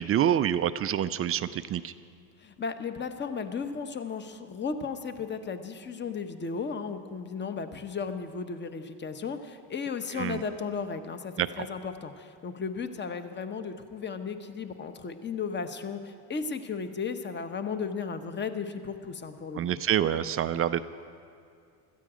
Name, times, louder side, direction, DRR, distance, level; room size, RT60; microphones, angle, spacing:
voice 1, 0.0-1.9 10.2-10.4 11.4-11.7 19.5-20.8, right 10 dB, 30° right, 12 dB, 0.4 m, -27 dB
voice 2, 2.4-19.8, left 5 dB, 25° left, 9 dB, 1.0 m, -35 dB
17.0 x 13.5 x 5.0 m, 2.4 s
supercardioid pair, 100°, 47 cm